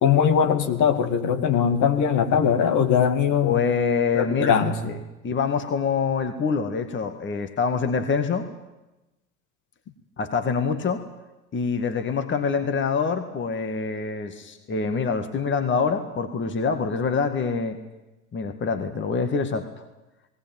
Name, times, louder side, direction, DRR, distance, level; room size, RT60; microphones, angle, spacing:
voice 1, 0.0-3.6 4.1-4.8, left 7 dB, 45° left, 7 dB, 2.3 m, -21 dB
voice 2, 3.4-5.0 5.2-8.5 10.2-11.0 11.5-17.8 18.3-19.7, left 5 dB, 25° left, 8 dB, 2.0 m, -25 dB
19.0 x 19.0 x 9.3 m, 1.0 s
hypercardioid pair, 75°, 43 cm